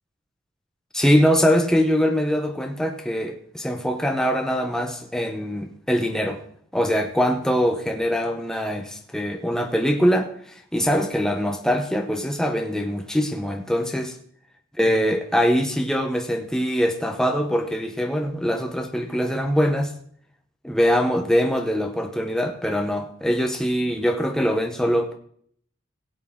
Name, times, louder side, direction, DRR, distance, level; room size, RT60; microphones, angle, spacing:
voice 1, 0.9-6.4 6.7-14.1 14.8-19.9 20.6-25.2, equal, 5° left, 0.8 m, -23 dB
17.0 x 8.4 x 3.7 m
head